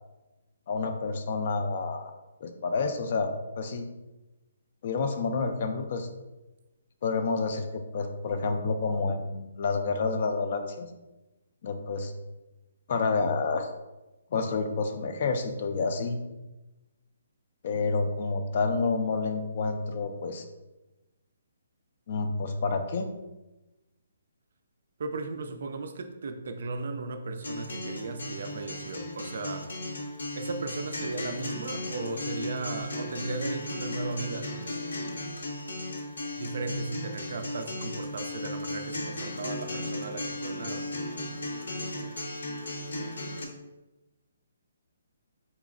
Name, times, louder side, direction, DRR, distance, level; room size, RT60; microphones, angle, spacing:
voice 1, 0.7-2.1 2.4-3.9 4.8-6.1 7.0-10.9 11.6-12.1 12.9-13.7 14.3-16.2 17.6-20.5 22.1-23.1, left 4 dB, 40° left, 7 dB, 0.3 m, -29 dB
voice 2, 25.0-29.7 30.3-34.5 36.4-41.0, right 3 dB, 55° right, 7 dB, 0.3 m, -36 dB
Acoustic guitar, 27.4-43.4, left 1 dB, 80° left, 0.7 m, -36 dB
4.1 x 2.9 x 2.4 m, 1.1 s
hypercardioid pair, 170°, 0 cm